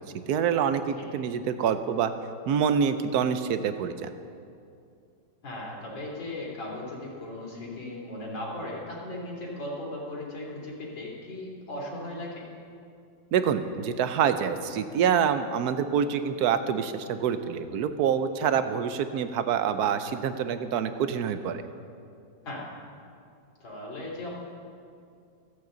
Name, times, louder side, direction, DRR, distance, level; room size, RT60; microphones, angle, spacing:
voice 1, 0.3-2.1 2.5-4.1 13.3-21.6, right 7 dB, 65° right, 10 dB, 1.0 m, -26 dB
voice 2, 5.4-12.4 22.4-22.6 23.6-24.3, left 1 dB, 85° left, -4 dB, 3.8 m, -37 dB
26.5 x 9.0 x 3.9 m, 2.4 s
omnidirectional pair, 2.1 m